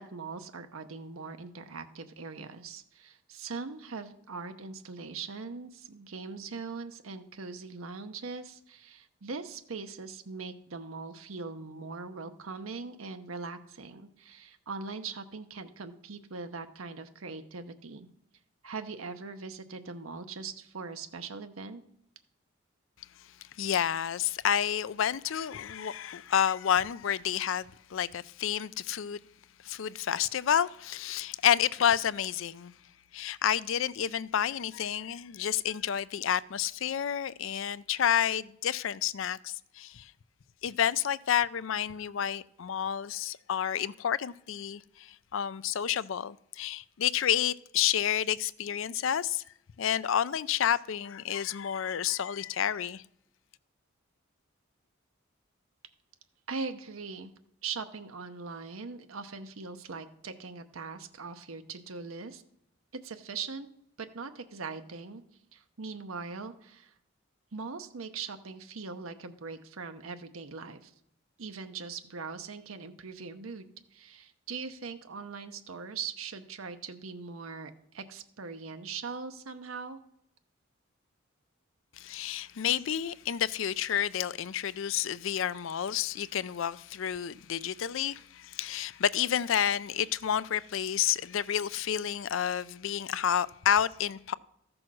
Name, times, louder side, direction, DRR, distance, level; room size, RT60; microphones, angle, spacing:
voice 1, 0.0-18.1 18.6-21.8 56.5-57.3 57.6-62.4 63.0-63.7 64.0-65.2 65.5-66.9 67.5-70.9 71.4-80.0, right 4 dB, 80° right, 0.8 m, -41 dB
voice 2, 23.6-29.2 29.6-32.7 33.1-40.1 40.6-49.4 49.8-53.0 82.0-94.3, left 9 dB, 70° left, 0.4 m, -30 dB
14.0 x 6.2 x 6.2 m
head